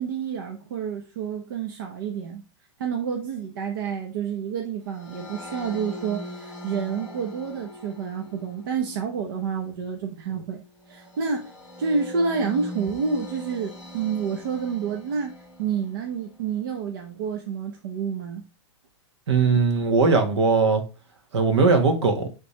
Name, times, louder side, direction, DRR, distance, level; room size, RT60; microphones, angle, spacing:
voice 1, 0.0-2.4 2.8-10.6 10.9-11.5 11.8-18.4, right 6 dB, 45° right, 0.8 m, -29 dB
sound 1, 4.9-16.3, left 1 dB, 5° right, 0.9 m, -42 dB
voice 2, 19.3-20.8 21.3-22.3, right 4 dB, 70° right, 1.6 m, -19 dB
8.5 x 3.4 x 3.3 m
hypercardioid pair, 175°, 16 cm